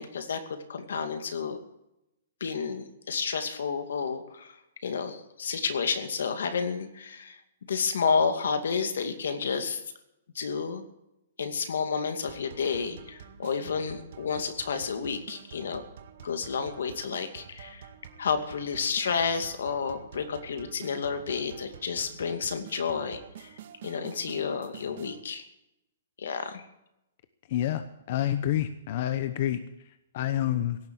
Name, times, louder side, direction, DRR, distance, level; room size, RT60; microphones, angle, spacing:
voice 1, 0.0-1.6 2.4-7.4 7.7-9.8 10.3-10.8 11.4-15.8 16.2-17.9 18.2-23.5 23.8-25.4 26.2-26.6, left 5 dB, 80° left, 7 dB, 2.4 m, -30 dB
sound 1, 12.3-25.2, right 8 dB, 55° right, 1.9 m, -48 dB
voice 2, 27.5-27.8 28.1-30.8, left 12 dB, 45° left, 11 dB, 0.9 m, -28 dB
17.0 x 7.4 x 9.7 m, 0.84 s
hypercardioid pair, 160°, 0 cm